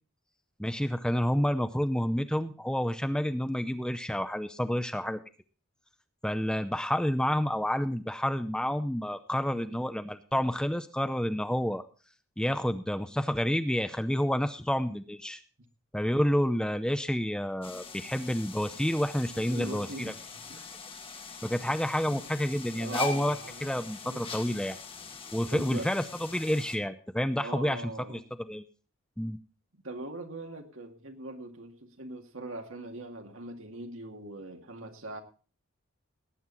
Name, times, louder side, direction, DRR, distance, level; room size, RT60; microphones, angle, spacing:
voice 1, 0.6-5.2 6.2-11.8 12.4-15.4 15.9-20.1 21.4-24.8 25.3-28.2 28.5-28.6 29.2-29.4, equal, 5° left, 10 dB, 0.6 m, -29 dB
voice 2, 9.5-9.8 19.3-21.2 22.1-22.2 22.8-23.7 24.0-24.3 25.5-25.9 27.4-28.2 29.8-35.2, right 2 dB, 70° right, 4 dB, 2.2 m, -42 dB
sound 1, 17.6-26.8, left 3 dB, 25° left, 1.4 m, -41 dB
18.0 x 9.4 x 4.1 m, 0.37 s
head